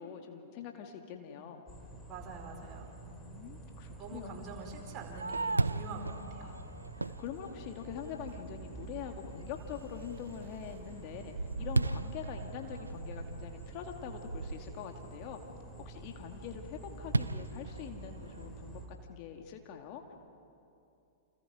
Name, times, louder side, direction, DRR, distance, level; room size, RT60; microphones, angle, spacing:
voice 1, 0.0-1.7 3.1-4.6 6.4-15.4 15.9-20.1, left 8 dB, 40° left, 4 dB, 2.2 m, -44 dB
sound 1, 1.7-18.9, right 2 dB, 15° left, 4.4 m, -49 dB
voice 2, 2.1-2.9 4.0-6.5, right 4 dB, 30° right, 2 dB, 4.7 m, -45 dB
Fireworks, 4.7-8.2 8.8-8.9 9.4-9.8 10.2-15.1 17.1-18.5, right 3 dB, 85° right, 0.6 m, -36 dB
sound 2, 8.2-12.3, right 6 dB, 60° right, 2.1 m, -52 dB
29.5 x 28.0 x 5.0 m, 2.7 s
figure-of-eight pair, 105°, 0 cm